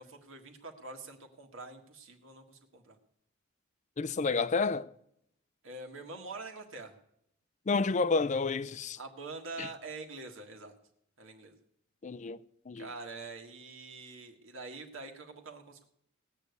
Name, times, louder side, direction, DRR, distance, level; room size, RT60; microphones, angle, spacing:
voice 1, 0.0-3.0 5.6-6.9 9.0-10.7 11.2-11.5 12.8-15.9, right 3 dB, 70° right, 1.7 m, -45 dB
voice 2, 4.0-4.9 7.7-9.0 9.6-9.7 12.0-12.4 12.7-12.9, left 4 dB, 35° left, 0.4 m, -30 dB
18.0 x 6.8 x 8.1 m
head